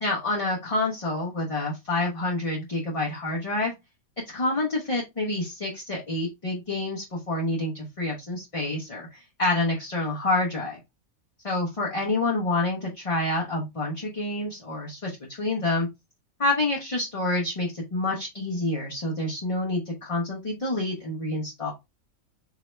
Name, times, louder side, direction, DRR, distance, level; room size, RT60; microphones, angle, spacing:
voice 1, 0.0-3.7 4.3-10.8 11.4-15.9 16.4-21.7, left 2 dB, 25° left, -3 dB, 1.0 m, -28 dB
4.8 x 2.8 x 3.3 m, 0.22 s
omnidirectional pair, 1.5 m